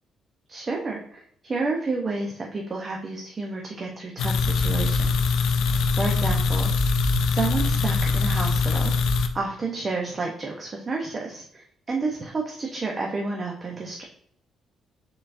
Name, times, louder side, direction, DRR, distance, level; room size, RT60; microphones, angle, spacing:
voice 1, 0.5-5.4 5.7-6.7 7.3-8.9 9.3-14.0, right 3 dB, 35° right, 0 dB, 0.7 m, -30 dB
sound 1, 4.2-9.3, left 4 dB, 75° left, 0.4 m, -22 dB
4.5 x 3.9 x 2.5 m, 0.64 s
cardioid pair, 90°, 0 cm